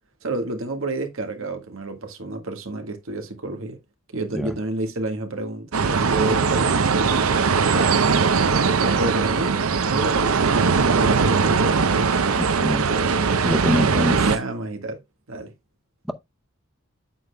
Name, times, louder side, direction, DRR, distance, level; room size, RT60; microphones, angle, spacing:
voice 1, 0.2-3.8 4.1-8.0 8.5-10.4 10.9-11.8 12.6-13.3 13.7-15.0 15.3-15.5, right 2 dB, 70° right, 1.6 m, -30 dB
sound 1, 5.7-14.4, right 5 dB, 90° right, 0.7 m, -20 dB
voice 2, 12.4-12.9 13.4-14.3, equal, ahead, 0.7 m, -24 dB
8.8 x 8.2 x 2.2 m
head